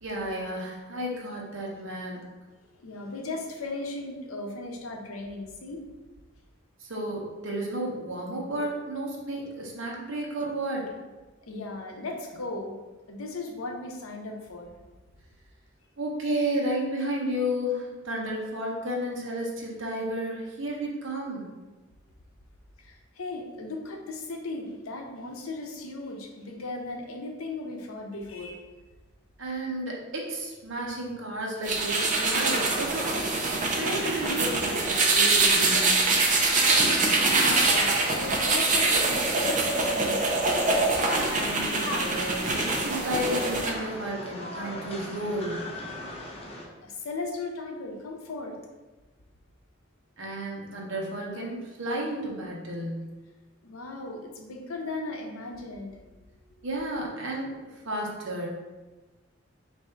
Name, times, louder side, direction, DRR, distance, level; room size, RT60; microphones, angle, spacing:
voice 1, 0.0-2.2 6.8-10.9 16.0-21.5 29.4-33.4 33.7-36.0 41.1-45.7 50.2-53.1 56.6-58.5, right 1 dB, 70° right, -2 dB, 0.9 m, -32 dB
voice 2, 2.8-5.8 11.4-12.7 13.1-14.7 22.8-28.7 36.4-40.3 46.1-46.3 46.8-48.6 53.6-56.0 56.3-56.7, left 2 dB, 90° left, 2 dB, 0.7 m, -37 dB
sound 1, 31.6-43.7, right 3 dB, 35° right, 0.5 m, -24 dB
sound 2, 40.9-46.7, left 1 dB, 30° left, 0.6 m, -38 dB
3.4 x 2.6 x 4.4 m, 1.2 s
head